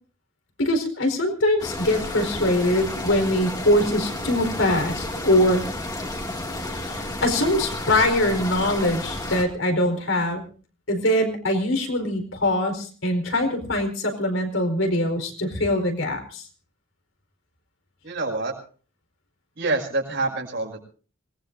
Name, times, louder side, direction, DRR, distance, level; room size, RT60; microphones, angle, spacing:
voice 1, 0.6-5.6 6.7-10.5 10.9-16.4, left 1 dB, 75° left, 4 dB, 4.6 m, -23 dB
sound 1, 1.6-9.4, left 1 dB, 20° left, 2.4 m, -31 dB
voice 2, 18.0-18.5 19.6-20.8, right 2 dB, 60° right, 0 dB, 5.7 m, -26 dB
26.5 x 20.0 x 2.7 m, 0.40 s
head